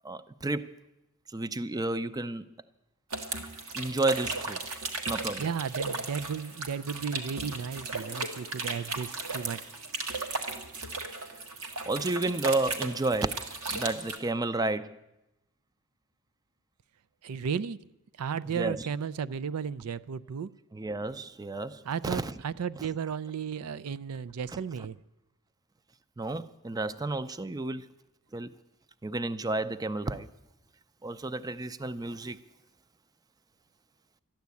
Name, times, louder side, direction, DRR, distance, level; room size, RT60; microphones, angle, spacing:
voice 1, 0.0-0.7 1.3-2.5 3.7-4.6 5.1-5.5 11.9-13.4 13.7-15.0 18.6-18.9 20.7-22.3 24.5-24.6 26.2-27.9 28.3-28.5 29.0-30.3 31.0-32.4, right 2 dB, 15° right, 0.5 m, -31 dB
sound 1, 3.1-14.2, right 3 dB, 70° right, 1.8 m, -36 dB
voice 2, 5.4-9.6 17.2-17.8 18.2-20.5 21.8-25.0, right 6 dB, 85° right, 0.4 m, -34 dB
13.0 x 10.5 x 8.3 m
head